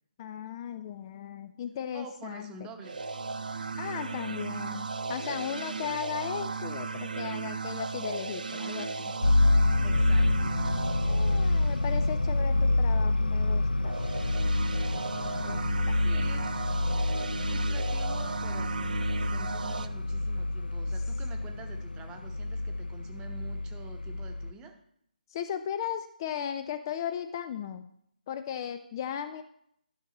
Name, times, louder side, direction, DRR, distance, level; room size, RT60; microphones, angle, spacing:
voice 1, 0.2-2.7 3.8-9.1 11.1-13.9 15.1-16.0 25.3-27.9 28.3-29.4, left 9 dB, 25° left, 9 dB, 0.4 m, -37 dB
voice 2, 1.9-3.0 9.8-10.5 16.0-16.6 17.5-19.0 19.3-24.7, right 4 dB, 15° right, 4 dB, 0.9 m, -47 dB
sound 1, 2.8-12.4 13.8-19.9, right 4 dB, 65° right, 0.6 m, -36 dB
sound 2, 9.2-24.5, left 2 dB, 85° left, 0.5 m, -27 dB
12.0 x 6.4 x 4.1 m, 0.70 s
figure-of-eight pair, 145°, 5 cm